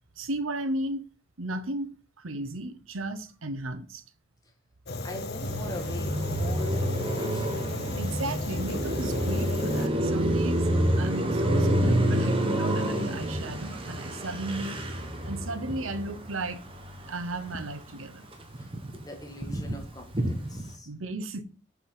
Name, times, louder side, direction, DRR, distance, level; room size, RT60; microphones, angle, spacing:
voice 1, 0.2-1.0 1.4-1.9 2.2-4.0 7.9-14.8 15.2-16.6 17.1-18.3 20.9-21.4, right 2 dB, 90° right, 1.0 m, -34 dB
Fire, 4.9-9.9, left 3 dB, 55° left, 0.8 m, -36 dB
voice 2, 5.0-7.5 13.4-13.5 18.6-20.9, left 1 dB, 20° left, 1.8 m, -43 dB
Car passing by, 5.4-17.9 18.2-20.7, right 1 dB, 25° right, 1.2 m, -28 dB
6.9 x 4.9 x 5.7 m
head